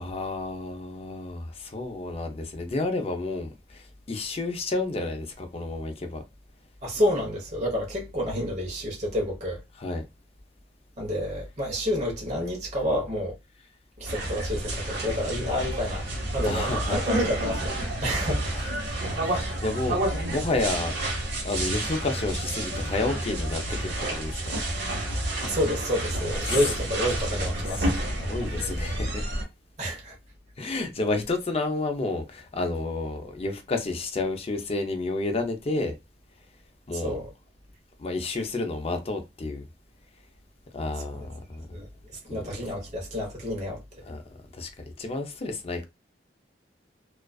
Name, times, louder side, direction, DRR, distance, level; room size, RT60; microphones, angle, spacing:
voice 1, 0.0-6.2 9.8-10.0 16.4-17.0 18.5-18.7 19.2-20.9 21.4-24.5 26.4-26.5 28.3-29.3 30.6-35.9 36.9-37.2 38.0-39.7 40.7-41.6 42.3-42.4 44.0-44.2 44.5-45.9, left 2 dB, 35° left, 0.5 m, -30 dB
voice 2, 6.8-9.6 11.0-13.4 14.0-18.4 25.4-28.6 29.8-30.2 36.9-37.3 41.7-43.8 44.1-44.2, equal, 40° right, 0.9 m, -29 dB
sound 1, 14.0-29.4, right 1 dB, 70° right, 1.0 m, -29 dB
2.4 x 2.3 x 2.3 m
head